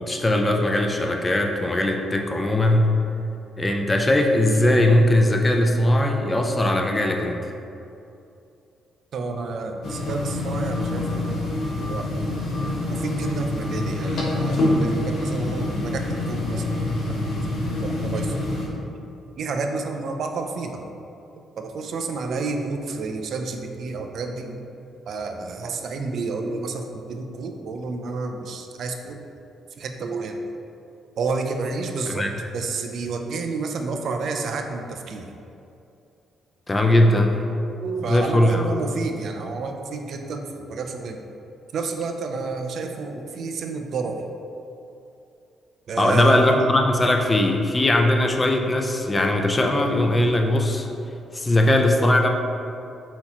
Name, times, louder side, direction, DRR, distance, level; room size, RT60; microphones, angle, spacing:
voice 1, 0.0-2.9 3.6-7.4 32.1-32.4 36.7-37.5 38.1-38.6 46.0-50.9 51.3-52.3, left 1 dB, 20° left, 3 dB, 0.4 m, -20 dB
voice 2, 9.1-11.3 11.8-12.1 12.9-17.2 17.7-18.8 19.3-20.8 21.6-24.6 25.1-29.2 29.8-30.4 31.2-32.3 32.5-35.3 37.8-41.2 41.7-44.2 45.9-46.5, right 3 dB, 65° right, 4 dB, 0.4 m, -30 dB
sound 1, 9.8-18.7, left 1 dB, 65° left, 0.8 m, -26 dB
5.7 x 2.9 x 2.8 m, 2.7 s
cardioid pair, 90°, 0 cm